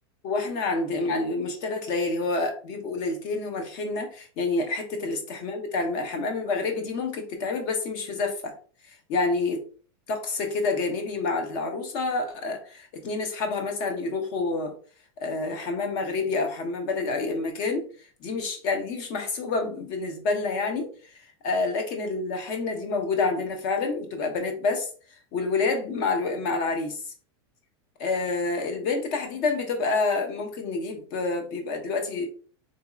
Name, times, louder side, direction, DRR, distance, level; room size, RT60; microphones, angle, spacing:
voice 1, 0.2-8.5 8.9-9.6 10.1-14.7 15.2-17.8 18.2-24.9 25.3-27.0 28.0-32.3, left 3 dB, 35° left, 4 dB, 0.7 m, -28 dB
3.9 x 2.7 x 2.3 m, 0.41 s
supercardioid pair, 180°, 14 cm